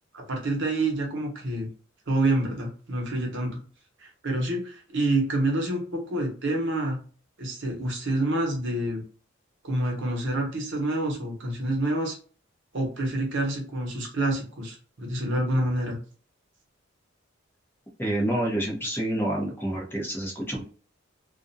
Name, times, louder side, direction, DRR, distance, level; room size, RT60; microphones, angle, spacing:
voice 1, 0.1-1.7 2.1-3.6 4.0-7.0 7.4-9.0 9.6-12.2 12.7-16.0, right 1 dB, 60° right, 1 dB, 0.8 m, -27 dB
voice 2, 18.0-20.6, right 1 dB, 10° left, -2 dB, 0.7 m, -28 dB
2.4 x 2.1 x 2.6 m, 0.38 s
head